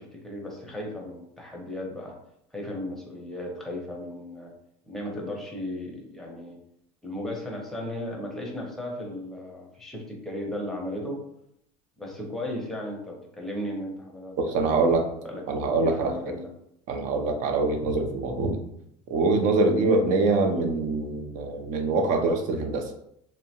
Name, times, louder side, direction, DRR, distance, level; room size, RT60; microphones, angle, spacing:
voice 1, 0.0-2.2 2.5-4.5 4.8-6.6 7.0-11.2 12.0-15.4 15.8-16.5, left 1 dB, ahead, -1 dB, 0.6 m, -36 dB
voice 2, 14.4-15.1 15.5-16.1 16.9-18.6 19.1-22.9, right 3 dB, 55° right, 4 dB, 0.5 m, -24 dB
2.7 x 2.1 x 2.8 m, 0.74 s
supercardioid pair, 120°, 16 cm